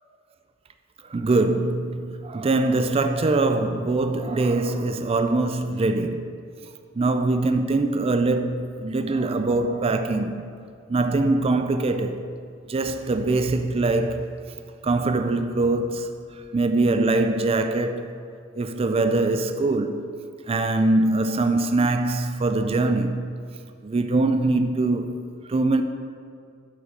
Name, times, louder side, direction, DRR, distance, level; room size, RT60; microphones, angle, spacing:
voice 1, 1.1-6.3 7.0-10.4 10.9-12.2 12.7-14.3 14.8-16.1 16.5-18.2 18.6-20.0 20.5-23.2 23.8-25.2 25.5-25.8, right 2 dB, 30° right, 0.4 m, -23 dB
8.3 x 4.9 x 5.1 m
head